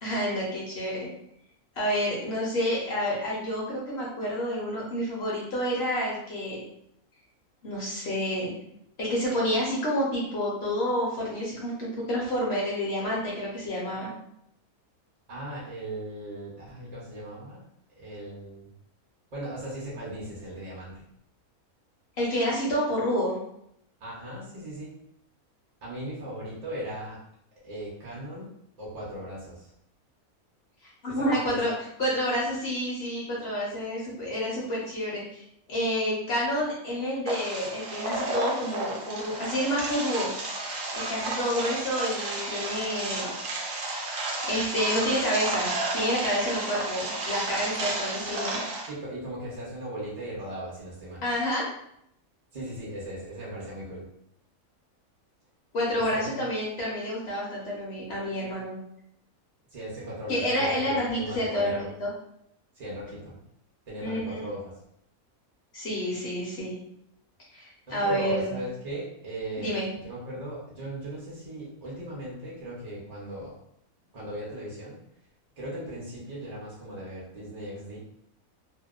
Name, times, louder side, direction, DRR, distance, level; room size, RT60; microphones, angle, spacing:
voice 1, 0.0-1.1 1.8-6.6 7.6-8.5 9.0-14.1 22.2-23.4 31.0-31.7 32.0-35.4 35.7-40.3 41.0-43.3 44.4-48.6 51.2-51.6 55.7-58.8 60.3-62.1 64.0-64.5 65.7-66.8 67.5-68.6 69.6-69.9, equal, 55° left, -4 dB, 0.8 m, -29 dB
voice 2, 15.3-17.6 18.0-18.7 19.3-21.0 24.0-24.9 25.8-27.2 27.6-28.5 28.8-29.7 31.1-31.6 48.9-51.2 52.5-54.1 55.9-56.3 59.7-61.9 62.8-63.4 63.9-64.7 67.9-69.7 70.0-73.5 74.1-75.0 75.6-78.0, right 1 dB, 50° right, -6 dB, 0.5 m, -38 dB
sound 1, 37.3-48.9, right 2 dB, 65° right, 0.9 m, -32 dB
2.7 x 2.0 x 2.3 m, 0.74 s
omnidirectional pair, 1.5 m